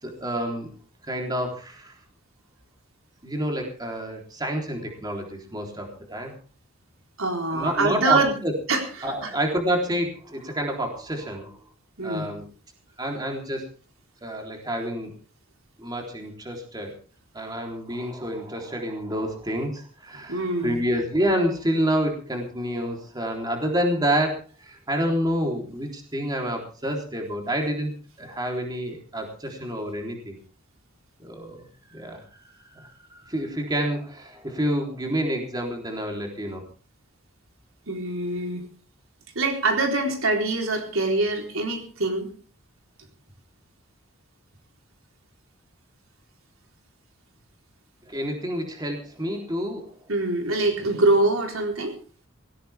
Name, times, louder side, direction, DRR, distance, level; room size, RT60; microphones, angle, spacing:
voice 1, 0.0-0.7 1.1-1.9 3.2-6.3 7.5-8.5 9.0-11.6 12.0-12.4 13.0-13.6 14.2-15.1 15.8-16.9 17.3-27.9 28.2-30.4 31.2-31.7 31.9-32.2 32.7-32.9 33.3-36.6 48.0-49.9, equal, 20° right, 1 dB, 3.7 m, -28 dB
voice 2, 7.2-8.4 8.7-9.3 12.0-12.3 20.3-20.7 37.9-38.6 39.4-42.3 50.1-51.9, right 2 dB, 75° right, 3 dB, 4.0 m, -24 dB
19.0 x 17.5 x 3.6 m, 0.40 s
head